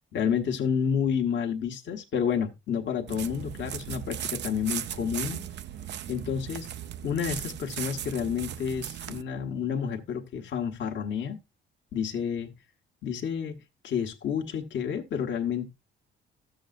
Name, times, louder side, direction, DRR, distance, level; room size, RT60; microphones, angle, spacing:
voice 1, 0.1-5.4 6.1-6.7 7.0-11.4 11.9-12.5 13.0-13.6 13.8-15.7, left 7 dB, 65° left, 1.2 m, -30 dB
sound 1, 3.1-9.2, right 10 dB, 65° right, 0.5 m, -37 dB
14.0 x 7.0 x 2.5 m
cardioid pair, 90°, 20 cm